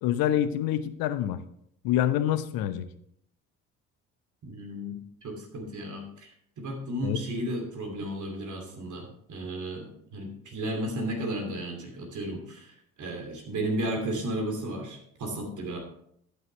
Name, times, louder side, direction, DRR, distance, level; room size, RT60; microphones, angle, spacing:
voice 1, 0.0-1.4 1.8-2.9 7.0-7.2, left 11 dB, 55° left, 13 dB, 0.8 m, -26 dB
voice 2, 4.4-15.8, right 1 dB, 45° right, 2 dB, 2.8 m, -34 dB
11.5 x 9.0 x 3.3 m, 0.70 s
figure-of-eight pair, 50°, 41 cm